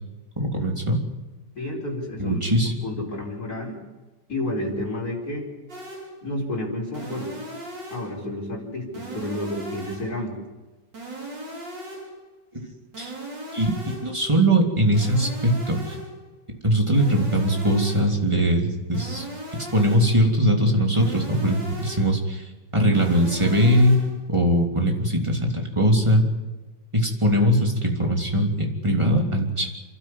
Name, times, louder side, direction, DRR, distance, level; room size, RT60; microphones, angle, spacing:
voice 1, 0.4-1.0 2.2-2.7 12.5-12.6 13.0-13.1 13.5-13.7 14.0-16.0 16.6-19.3 19.7-22.5 22.7-24.0 24.3-26.3 26.9-29.7, equal, 15° right, 1 dB, 3.3 m, -21 dB
voice 2, 1.6-3.8 4.3-5.5 6.2-7.3 7.9-10.4, left 1 dB, 50° left, 0 dB, 5.5 m, -30 dB
sound 1, 5.7-6.2 6.9-8.2 8.9-10.2 10.9-12.2 12.9-14.2 14.9-16.2 16.9-18.2 18.9-20.2 20.9-22.2 22.9-24.2, right 1 dB, 65° right, 5.4 m, -37 dB
29.0 x 12.0 x 9.6 m, 1.2 s
omnidirectional pair, 2.1 m